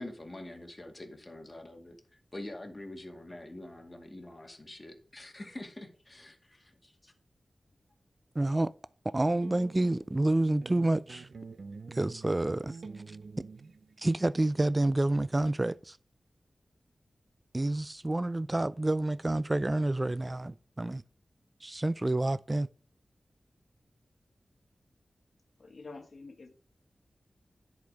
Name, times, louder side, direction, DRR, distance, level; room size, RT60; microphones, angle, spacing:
voice 1, 0.0-7.1, left 1 dB, 25° left, 2.1 m, -45 dB
voice 2, 8.4-8.7 9.1-11.3 11.9-12.8 13.1-13.2 14.0-16.0 17.5-21.0 21.6-22.7, right 2 dB, 25° right, 0.3 m, -28 dB
sound 1, 9.3-10.3 10.6-14.1, right 4 dB, 70° right, 0.6 m, -48 dB
voice 3, 25.6-26.5, left 3 dB, 65° left, 1.3 m, -47 dB
10.5 x 5.0 x 5.2 m
wide cardioid pair, 70°, 0 cm